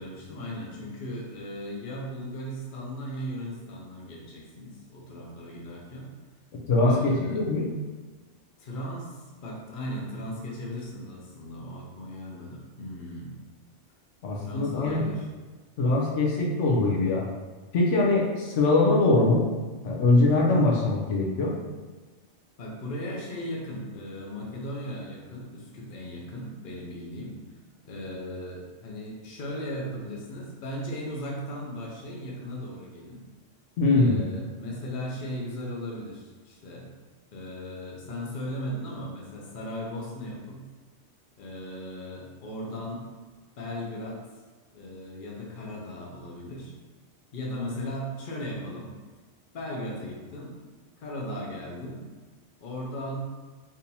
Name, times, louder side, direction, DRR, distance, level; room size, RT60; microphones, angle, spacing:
voice 1, 0.0-6.1 6.8-7.4 8.6-13.3 14.4-15.3 22.6-27.4 27.8-33.2 33.8-36.9 37.3-40.6 41.4-43.1 43.6-44.2 44.7-46.7 47.3-49.0 49.5-50.6 51.0-52.0 52.6-53.2, equal, 50° left, -3 dB, 0.8 m, -37 dB
voice 2, 6.7-7.7 14.2-15.0 15.8-17.2 17.7-19.4 19.8-21.5 33.8-34.2, left 2 dB, 80° left, -2 dB, 1.0 m, -22 dB
3.7 x 2.6 x 2.8 m, 1.3 s
omnidirectional pair, 1.2 m